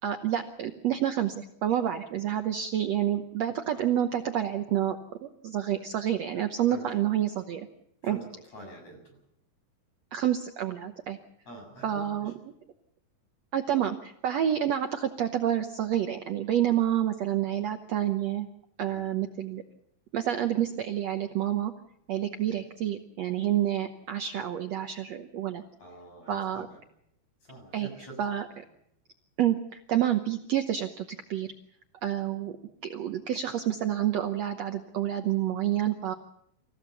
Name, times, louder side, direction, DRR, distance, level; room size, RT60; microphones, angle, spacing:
voice 1, 0.0-7.7 8.0-8.2 10.1-11.2 11.8-12.3 13.5-18.5 18.8-19.6 20.1-21.7 22.1-25.6 26.3-26.7 27.7-27.9 28.2-28.4 29.4-31.5 32.0-32.5 32.8-36.1, right 11 dB, 85° right, 6 dB, 1.4 m, -28 dB
voice 2, 8.5-9.2 11.5-12.3 18.8-19.1 25.8-26.8 27.4-28.6, right 2 dB, 45° left, 3 dB, 8.1 m, -46 dB
26.5 x 15.5 x 7.0 m, 0.75 s
omnidirectional pair, 4.4 m